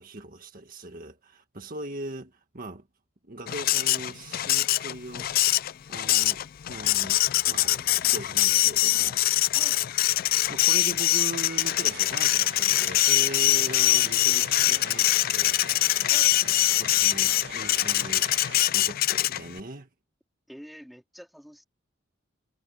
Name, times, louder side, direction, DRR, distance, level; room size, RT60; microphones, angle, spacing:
voice 1, 0.0-2.8 3.3-7.2 7.5-9.2 10.5-16.1 16.4-19.9, right 2 dB, 45° right, 1.7 m, -40 dB
Printer, 3.5-19.6, left 15 dB, 45° left, 0.3 m, -23 dB
sound 1, 11.5-18.7, right 5 dB, 60° right, 2.6 m, -44 dB
voice 2, 16.1-16.6 20.5-21.6, equal, ahead, 4.0 m, -47 dB
head